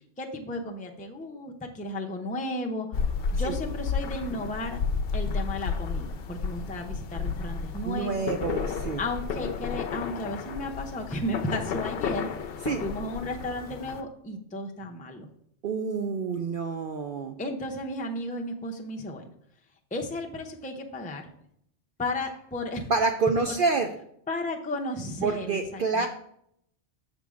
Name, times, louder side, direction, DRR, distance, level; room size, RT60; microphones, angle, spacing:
voice 1, 0.2-3.0 3.3-4.8 5.1-8.3 9.0-12.3 12.8-15.3 17.4-19.2 19.9-21.3 22.0-22.9 23.5-23.6 24.3-26.1, left 1 dB, 10° left, 2 dB, 0.5 m, -34 dB
sound 1, 2.9-14.0, left 5 dB, 60° left, 0.7 m, -32 dB
voice 2, 7.8-9.0 12.6-12.8 15.6-17.3 22.9-23.9 25.2-26.1, right 4 dB, 60° right, 5 dB, 0.6 m, -27 dB
6.7 x 3.5 x 6.2 m, 0.71 s
omnidirectional pair, 1.2 m